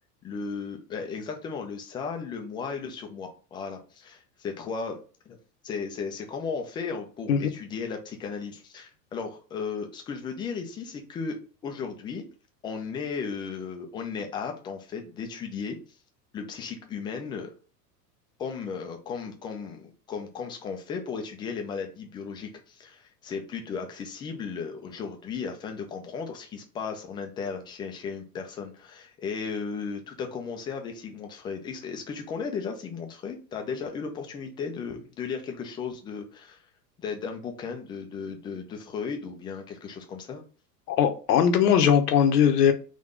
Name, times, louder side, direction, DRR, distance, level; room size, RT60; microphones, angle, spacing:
voice 1, 0.2-5.0 5.3-5.4 5.6-11.4 11.6-12.2 12.6-15.8 16.3-17.5 18.4-36.6 37.0-40.4, left 5 dB, 10° left, 0.3 m, -35 dB
voice 2, 40.9-42.7, left 8 dB, 70° left, 0.8 m, -20 dB
3.7 x 2.7 x 3.6 m
figure-of-eight pair, 90°, 49 cm